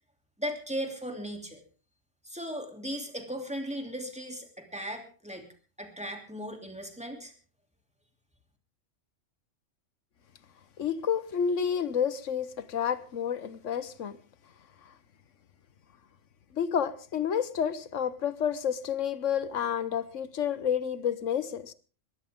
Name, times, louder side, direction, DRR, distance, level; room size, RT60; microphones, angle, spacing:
voice 1, 0.4-1.6 2.2-5.5 5.8-7.3, equal, 5° right, 2.9 m, -37 dB
voice 2, 10.8-14.2 16.5-21.7, left 8 dB, 85° left, 1.4 m, -30 dB
21.5 x 16.0 x 3.6 m
omnidirectional pair, 1.2 m